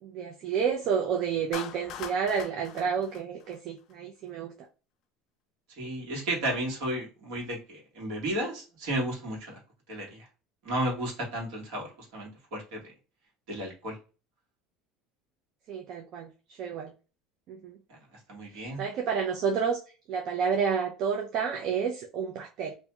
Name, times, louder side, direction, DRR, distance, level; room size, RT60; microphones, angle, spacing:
voice 1, 0.0-4.5 15.7-16.9 17.5-17.8 18.5-19.8 20.1-22.7, right 6 dB, 55° right, 0.5 m, -30 dB
Clapping, 1.5-3.9, left 10 dB, 55° left, 0.4 m, -42 dB
voice 2, 5.8-9.6 9.9-10.2 10.6-12.8 13.5-14.0 17.9-18.0 18.3-18.8, right 1 dB, 70° right, 1.4 m, -33 dB
2.6 x 2.3 x 2.9 m
supercardioid pair, 115°, 0 cm